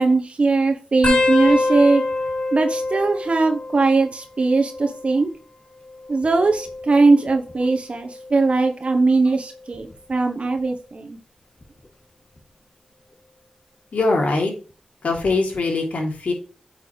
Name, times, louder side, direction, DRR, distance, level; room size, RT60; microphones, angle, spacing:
voice 1, 0.0-2.0 2.5-5.3 6.1-11.2, right 3 dB, 55° right, 4 dB, 1.2 m, -19 dB
sound 1, 1.0-4.2 4.5-5.1 6.1-7.6 8.2-8.5 9.7-10.1 11.6-11.7, left 2 dB, 55° left, 3.4 m, -25 dB
voice 2, 13.9-14.5 15.0-16.3, left 3 dB, 80° left, 2 dB, 3.0 m, -22 dB
8.6 x 6.0 x 3.2 m, 0.36 s
cardioid pair, 55°, 2 cm